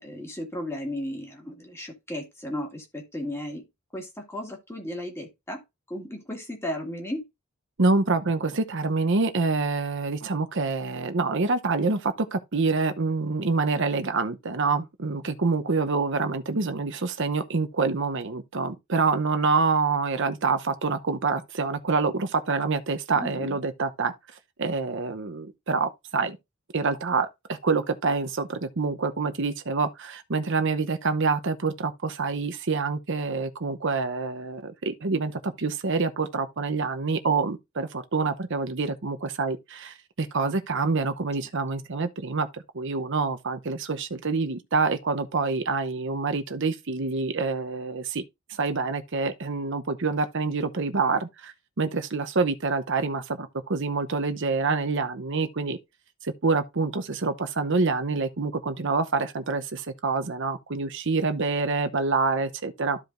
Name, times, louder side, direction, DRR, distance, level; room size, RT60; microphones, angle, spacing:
voice 1, 0.0-3.6 3.9-5.6 5.9-7.2 23.2-23.6, left 1 dB, 10° left, 2.2 m, -35 dB
voice 2, 7.8-24.1 24.6-26.4 26.7-48.2 48.5-55.8 56.2-63.0, right 4 dB, 60° right, 0.9 m, -26 dB
13.5 x 4.9 x 2.6 m
head